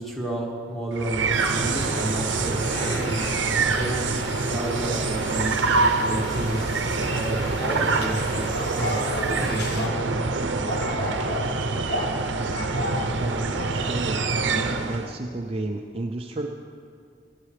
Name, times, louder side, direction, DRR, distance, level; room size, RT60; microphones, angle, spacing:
voice 1, 0.0-4.1 4.4-5.5 6.0-10.1, right 1 dB, ahead, -3 dB, 1.9 m, -32 dB
sound 1, 0.9-15.2, right 4 dB, 85° right, 0.7 m, -25 dB
sound 2, 1.3-9.9, left 3 dB, 60° left, 1.0 m, -38 dB
sound 3, 8.3-10.0 10.7-11.5 11.9-12.1 12.5-13.0 13.5-13.8 14.3-14.5, equal, 75° left, 2.8 m, -31 dB
voice 2, 13.1-14.4 14.7-16.5, right 2 dB, 30° right, 3 dB, 0.5 m, -32 dB
19.0 x 11.0 x 3.2 m, 2.2 s
head